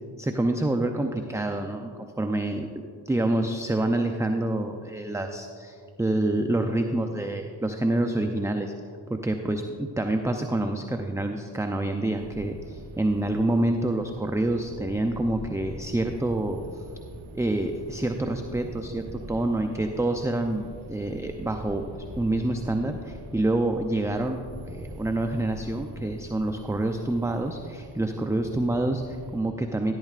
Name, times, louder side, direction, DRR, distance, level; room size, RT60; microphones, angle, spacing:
voice 1, 0.2-2.7 3.1-8.7 9.1-16.8 17.3-21.9 22.2-29.9, right 1 dB, 5° right, 5 dB, 0.5 m, -27 dB
sound 1, 12.1-29.4, right 1 dB, 90° right, 1.3 m, -43 dB
12.5 x 11.5 x 2.5 m, 2.3 s
cardioid pair, 50°, 47 cm